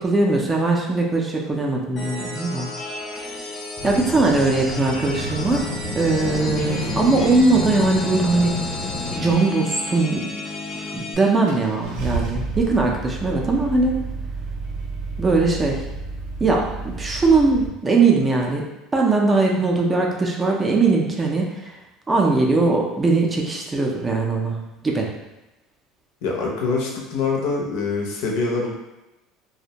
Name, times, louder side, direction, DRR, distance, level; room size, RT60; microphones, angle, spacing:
voice 1, 0.0-2.7 3.8-5.6 6.0-8.7 9.2-10.2 10.9-14.0 15.2-15.8 16.4-18.6 18.9-21.8 22.1-25.1, right 3 dB, 15° right, 0 dB, 0.4 m, -20 dB
sound 1, 2.0-11.1, left 2 dB, 35° left, 0.5 m, -33 dB
sound 2, 3.8-9.4, left 1 dB, ahead, 0.7 m, -30 dB
Car / Engine starting, 10.8-10.9 11.5-17.7, right 3 dB, 75° right, 0.6 m, -31 dB
voice 2, 26.2-28.7, left 4 dB, 75° left, -1 dB, 0.6 m, -24 dB
2.5 x 2.1 x 2.8 m, 1.0 s
cardioid pair, 145°, 0 cm